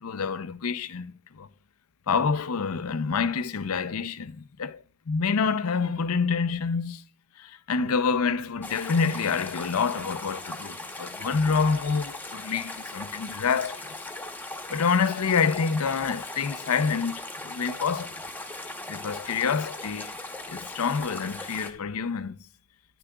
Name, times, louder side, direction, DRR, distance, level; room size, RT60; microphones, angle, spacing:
voice 1, 0.0-1.5 2.1-7.0 7.4-13.9 14.7-18.2 18.9-20.2 20.5-22.4, left 5 dB, 80° left, 0.6 m, -27 dB
sound 1, 8.6-21.7, left 2 dB, 10° left, 0.9 m, -39 dB
10.0 x 9.9 x 2.3 m
head